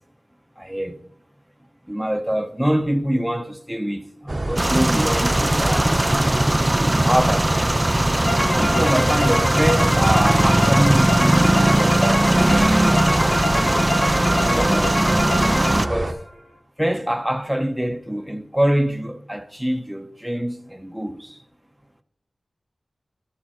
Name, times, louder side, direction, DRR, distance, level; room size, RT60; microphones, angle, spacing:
voice 1, 0.6-1.0 1.9-6.0 6.4-7.8 8.6-12.7 13.5-13.8 14.4-15.2 15.8-16.2 16.8-21.4, equal, 5° right, 1.0 m, -25 dB
sound 1, 4.3-16.1, right 2 dB, 40° right, 0.9 m, -27 dB
sound 2, 4.6-15.9, right 1 dB, 20° right, 0.4 m, -19 dB
sound 3, 8.3-16.1, left 1 dB, 55° left, 3.6 m, -25 dB
13.0 x 7.2 x 4.6 m
wide cardioid pair, 55°, 0 cm